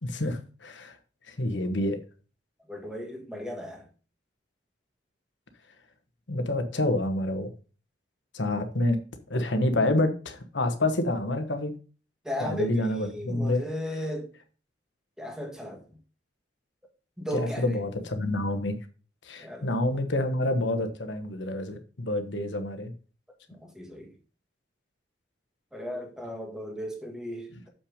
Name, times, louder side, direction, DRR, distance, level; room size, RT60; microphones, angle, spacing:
voice 1, 0.0-0.9 1.3-2.0 6.3-7.5 8.3-9.0 9.3-11.7 12.4-13.7 17.3-18.8 19.2-22.9, left 1 dB, 75° left, 1.3 m, -28 dB
voice 2, 2.7-3.8 12.2-14.3 15.2-15.8 17.2-17.6 19.4-19.7 23.6-24.1 25.7-27.7, equal, 5° right, 1.7 m, -35 dB
7.1 x 5.8 x 5.0 m
head